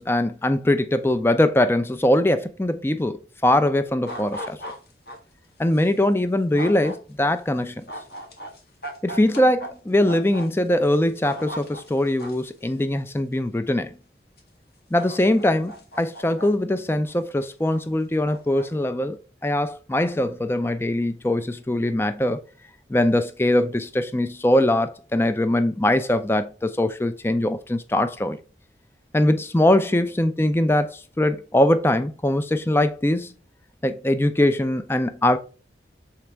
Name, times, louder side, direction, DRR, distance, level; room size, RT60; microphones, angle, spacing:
voice 1, 0.0-4.6 5.6-7.8 9.0-13.9 14.9-19.2 19.4-22.4 22.9-28.4 29.1-33.3 33.8-35.4, left 1 dB, 15° left, 0.4 m, -22 dB
sound 1, 4.1-5.2 5.7-5.9 6.5-7.0 7.9-9.7 10.1-10.5 10.9-12.5 13.3-13.4 14.4-14.5 14.9-16.5 17.1-17.8 18.3-18.7, equal, 65° left, 1.6 m, -37 dB
7.2 x 4.2 x 3.4 m
head